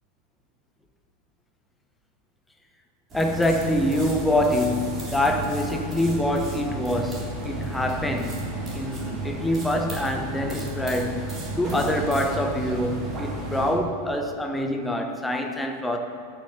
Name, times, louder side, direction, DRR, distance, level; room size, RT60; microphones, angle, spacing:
voice 1, 3.1-16.0, left 1 dB, 5° left, 4 dB, 1.0 m, -25 dB
sound 1, 3.1-13.7, right 1 dB, 25° right, 3.3 m, -32 dB
12.5 x 6.4 x 6.7 m, 2.5 s
figure-of-eight pair, 90°, 0 cm